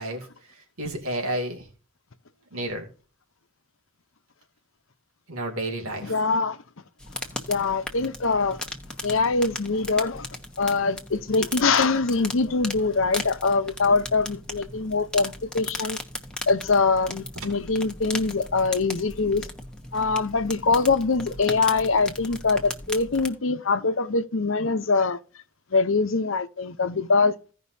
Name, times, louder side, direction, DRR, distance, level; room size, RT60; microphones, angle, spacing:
voice 1, 0.0-1.7 2.5-2.9 5.3-6.1, right 1 dB, 85° right, 2.6 m, -31 dB
voice 2, 6.0-6.6 7.5-8.6 9.0-10.3 10.6-16.0 16.5-19.5 19.9-25.2 25.7-27.3, left 4 dB, 70° left, 0.8 m, -23 dB
sound 1, 7.0-23.3, left 2 dB, 5° left, 1.0 m, -37 dB
16.5 x 5.4 x 2.7 m
head